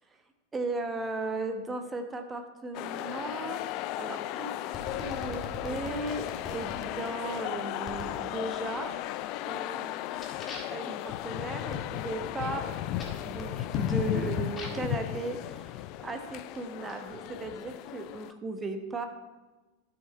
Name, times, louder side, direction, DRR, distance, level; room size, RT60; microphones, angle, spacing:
voice 1, 0.5-4.5 5.0-8.9 9.5-10.0 10.7-12.7 13.2-19.1, right 2 dB, 15° right, 5 dB, 1.1 m, -36 dB
sound 1, 2.7-18.3, left 13 dB, 40° left, 0.3 m, -35 dB
sound 2, 4.7-6.8 7.9-8.2 8.7-9.2 9.5-14.9 15.7-17.0, left 3 dB, 25° left, 1.8 m, -44 dB
12.5 x 6.5 x 4.2 m, 1.2 s
figure-of-eight pair, 90°, 0 cm